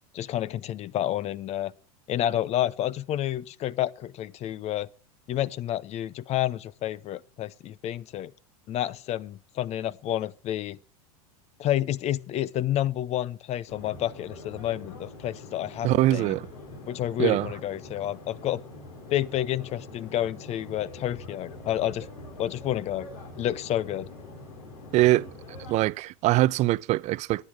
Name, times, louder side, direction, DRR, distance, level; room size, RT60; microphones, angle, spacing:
voice 1, 0.1-1.7 2.1-4.9 5.3-8.3 8.7-10.8 11.6-16.4 16.9-18.6 19.1-22.1 22.4-23.1 23.4-24.1, left 12 dB, 35° left, 0.6 m, -29 dB
sound 1, 13.7-25.9, left 2 dB, 70° left, 3.7 m, -44 dB
voice 2, 15.8-16.5 17.2-17.5 24.9-25.3 25.7-27.4, right 17 dB, 40° right, 0.4 m, -23 dB
9.6 x 8.6 x 6.2 m
hypercardioid pair, 100°, 19 cm